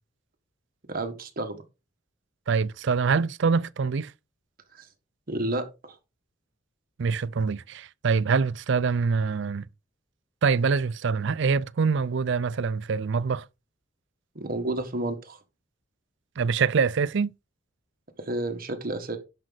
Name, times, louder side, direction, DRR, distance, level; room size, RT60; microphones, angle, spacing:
voice 1, 0.9-1.6 4.7-4.9 5.3-6.0 14.3-15.4 18.2-19.2, right 2 dB, 50° right, 1.6 m, -31 dB
voice 2, 2.5-4.1 7.0-9.7 10.4-13.4 16.4-17.3, right 5 dB, 65° right, 0.5 m, -25 dB
10.5 x 6.2 x 4.1 m
head